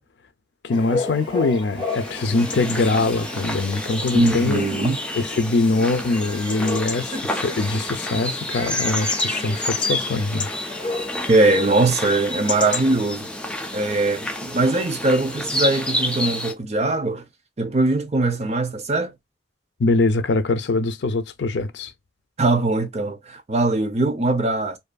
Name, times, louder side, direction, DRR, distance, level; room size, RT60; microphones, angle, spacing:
voice 1, 0.6-4.6 5.1-10.5 19.8-21.9, left 3 dB, 70° left, 0.4 m, -23 dB
Chatter / Bark / Livestock farm animals working animals, 0.7-12.9, left 3 dB, 30° left, 1.1 m, -33 dB
sound 1, 1.8-16.5, left 1 dB, 5° left, 0.4 m, -29 dB
voice 2, 4.1-5.0 11.3-13.3 13.7-17.2 17.6-19.1 22.4-24.8, right 2 dB, 40° right, 0.6 m, -21 dB
2.6 x 2.5 x 2.2 m
head